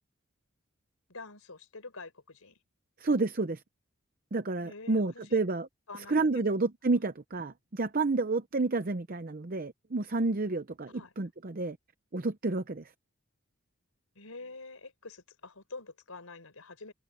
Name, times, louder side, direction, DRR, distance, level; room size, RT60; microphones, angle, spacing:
voice 1, 1.1-2.6 4.6-5.4 5.9-6.6 10.9-11.1 14.1-16.9, left 3 dB, 90° left, 4.5 m, -46 dB
voice 2, 3.0-3.6 4.3-5.7 6.1-11.8 12.1-12.9, right 3 dB, 40° right, 0.7 m, -30 dB
head